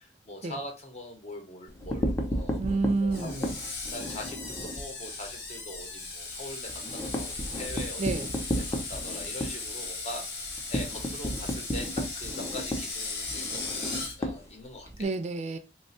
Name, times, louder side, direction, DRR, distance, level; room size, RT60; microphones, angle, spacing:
voice 1, 0.0-2.6 3.0-8.0 8.4-13.8 14.2-15.1, left 1 dB, 40° left, 0.9 m, -42 dB
sound 1, 1.7-4.9 5.3-5.4 5.7-5.8 6.2-15.0, equal, 15° left, 0.6 m, -33 dB
voice 2, 2.6-3.5 8.0-8.3 15.0-15.6, right 3 dB, 40° right, 0.4 m, -29 dB
Screech, 3.1-14.2, left 3 dB, 70° left, 1.3 m, -37 dB
3.0 x 2.2 x 4.1 m
head